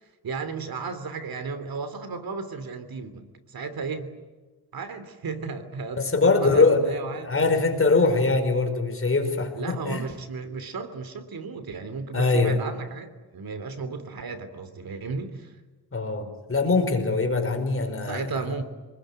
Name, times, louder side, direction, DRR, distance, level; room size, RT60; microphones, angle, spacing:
voice 1, 0.2-4.1 4.7-7.5 9.5-15.5 18.0-18.6, right 4 dB, 65° right, 11 dB, 3.1 m, -34 dB
voice 2, 6.0-6.9 7.2-10.0 12.1-12.6 15.9-18.3, left 3 dB, 35° left, 6 dB, 5.1 m, -22 dB
28.0 x 21.0 x 9.3 m, 1.3 s
cardioid pair, 105°, 38 cm